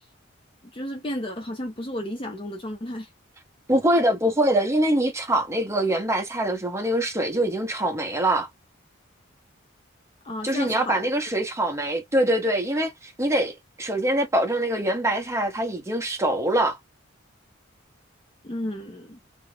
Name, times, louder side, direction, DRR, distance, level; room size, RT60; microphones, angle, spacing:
voice 1, 0.6-3.1 10.2-11.1 18.4-19.2, left 1 dB, 25° left, 0.5 m, -33 dB
voice 2, 3.7-8.5 10.4-16.8, right 1 dB, 15° right, 0.8 m, -24 dB
2.4 x 2.1 x 3.1 m
head